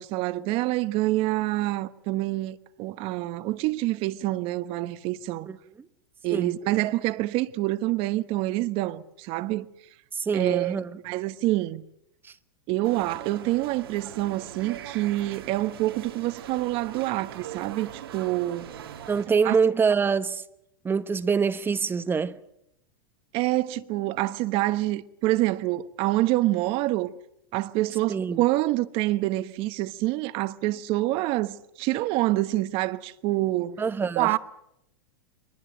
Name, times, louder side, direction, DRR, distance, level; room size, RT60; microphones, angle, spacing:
voice 1, 0.0-5.5 6.2-9.6 10.3-10.8 11.0-11.8 12.7-18.7 19.4-19.6 23.3-27.1 27.5-33.8 34.2-34.4, right 17 dB, 50° right, 1.2 m, -26 dB
voice 2, 10.1-10.9 12.2-12.3 19.1-20.4 20.8-22.4 28.1-28.4 33.8-34.4, right 5 dB, 15° right, 1.0 m, -25 dB
sound 1, 12.8-19.2, right 10 dB, 85° right, 2.5 m, -41 dB
23.0 x 20.5 x 8.1 m
hypercardioid pair, 115°, 12 cm